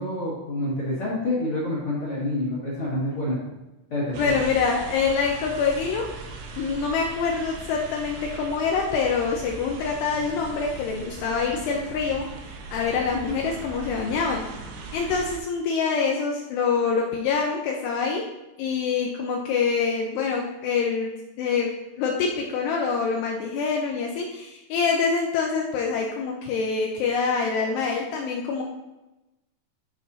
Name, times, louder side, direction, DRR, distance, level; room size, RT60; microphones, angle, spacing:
voice 1, 0.0-3.4 3.9-4.3, left 1 dB, 60° left, -9 dB, 1.4 m, -27 dB
sound 1, 4.1-15.4, right 4 dB, 80° right, 2.2 m, -39 dB
voice 2, 4.2-6.1 6.6-12.3 12.7-14.5 14.9-18.3 18.6-28.6, left 5 dB, 80° left, 0 dB, 2.5 m, -25 dB
11.5 x 5.3 x 2.8 m, 1.0 s
omnidirectional pair, 5.5 m